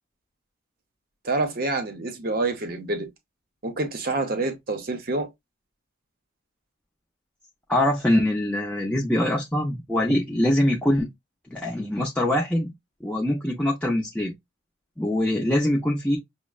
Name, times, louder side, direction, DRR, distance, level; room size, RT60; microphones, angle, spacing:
voice 1, 1.2-3.1 3.6-5.3, right 2 dB, 50° right, 0.8 m, -27 dB
voice 2, 7.7-11.1 11.5-12.7 13.0-14.3 15.0-16.2, left 1 dB, 5° left, 0.5 m, -23 dB
6.1 x 2.0 x 2.3 m
head